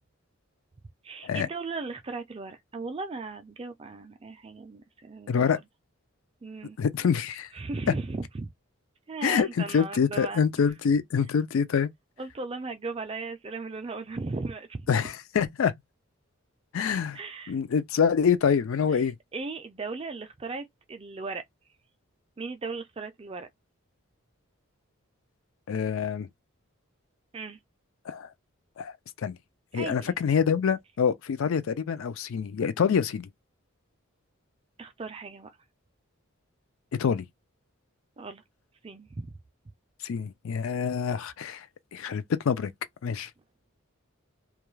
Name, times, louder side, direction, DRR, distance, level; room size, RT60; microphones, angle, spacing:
voice 1, 1.0-5.5 6.4-6.8 7.5-8.5 9.1-10.4 12.2-14.9 17.1-17.6 18.9-19.0 19.3-21.4 22.4-23.5 27.3-27.6 29.7-30.1 34.8-35.6 38.2-38.4 38.8-39.3, right 3 dB, 25° right, 0.3 m, -37 dB
voice 2, 5.3-5.6 6.8-7.5 9.2-11.9 14.9-15.7 16.7-17.2 17.5-19.1 25.7-26.3 28.1-28.3 28.8-28.9 29.2-29.4 29.7-33.3 37.0-37.2 40.0-41.7 41.9-42.7 43.0-43.3, left 6 dB, 65° left, 0.4 m, -26 dB
2.3 x 2.2 x 3.1 m
head